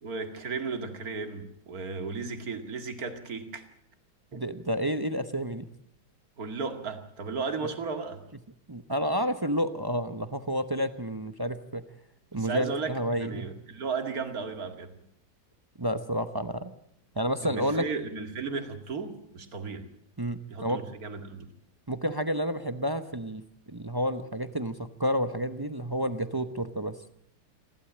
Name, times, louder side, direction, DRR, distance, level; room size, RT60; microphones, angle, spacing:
voice 1, 0.0-3.6 4.3-4.4 6.4-8.2 12.4-15.0 17.4-19.9 20.5-21.5, right 4 dB, 55° right, 7 dB, 2.5 m, -35 dB
voice 2, 4.3-5.7 8.7-11.8 12.3-13.5 15.8-16.7 17.1-17.8 20.2-20.8 21.9-23.4 23.7-27.0, equal, 25° right, 10 dB, 0.5 m, -30 dB
28.5 x 12.0 x 8.6 m, 0.74 s
omnidirectional pair, 1.9 m